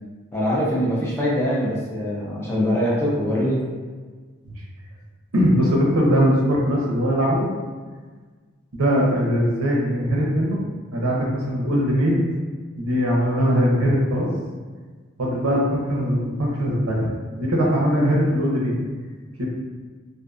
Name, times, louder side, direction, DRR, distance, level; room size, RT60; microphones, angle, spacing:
voice 1, 0.3-3.6, equal, 10° left, -6 dB, 0.5 m, -23 dB
voice 2, 5.3-7.5 8.7-10.6 10.9-12.2 12.8-14.3 15.2-17.1 17.4-18.8 19.4-19.5, equal, 90° right, -3 dB, 0.7 m, -20 dB
2.5 x 2.5 x 2.3 m, 1.4 s
head